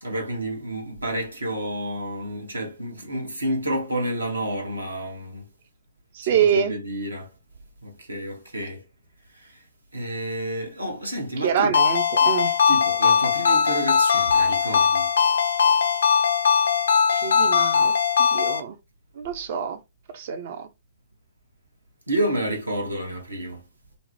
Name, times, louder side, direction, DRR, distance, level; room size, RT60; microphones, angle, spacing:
voice 1, 0.0-5.5 6.2-7.3 7.8-8.8 9.4-9.5 9.9-11.7 12.7-15.1 22.1-23.6, right 1 dB, 80° right, 0.9 m, -30 dB
voice 2, 6.2-6.7 11.4-12.5 17.2-17.9 18.3-18.8 19.2-19.8 20.1-20.7, right 8 dB, 45° right, 0.5 m, -25 dB
Ringtone, 11.7-18.6, left 6 dB, 65° left, 0.4 m, -20 dB
2.6 x 2.1 x 3.0 m
figure-of-eight pair, 120°, 0 cm